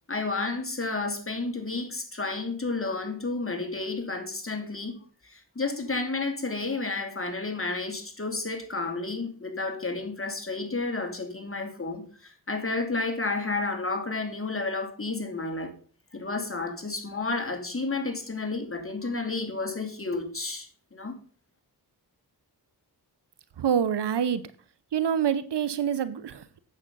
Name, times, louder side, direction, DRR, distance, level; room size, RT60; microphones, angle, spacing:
voice 1, 0.1-4.9 5.2-15.8 16.1-21.2, left 3 dB, 35° left, 2.7 m, -31 dB
voice 2, 23.6-24.4 24.9-26.4, right 8 dB, 85° right, 0.9 m, -26 dB
9.0 x 7.6 x 5.4 m
cardioid pair, 55°, 40 cm